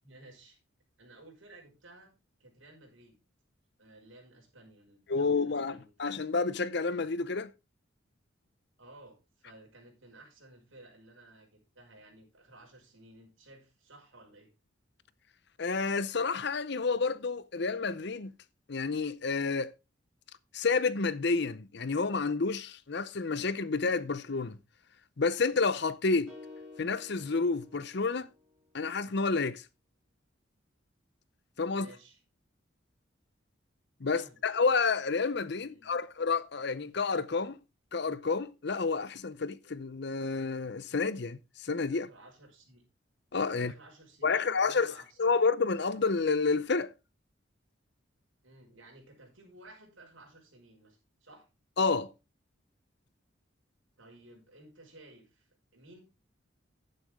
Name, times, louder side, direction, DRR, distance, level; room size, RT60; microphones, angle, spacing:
voice 1, 0.0-0.6 1.0-2.1 2.4-3.2 3.8-6.1 8.8-14.5 31.7-32.2 34.1-34.4 35.6-36.0 41.9-42.8 43.5-45.4 48.4-51.5 54.0-56.0, right 2 dB, 75° right, 5.4 m, -55 dB
voice 2, 5.1-7.5 15.6-18.3 18.7-19.7 20.5-24.6 25.2-26.3 26.8-28.3 28.7-29.6 31.6-31.9 34.0-37.6 37.9-42.1 43.3-43.7 44.2-44.9 45.2-46.9 51.8-52.1, left 4 dB, 55° left, 0.7 m, -29 dB
sound 1, 26.3-28.6, left 3 dB, ahead, 7.5 m, -51 dB
11.0 x 9.4 x 3.6 m
head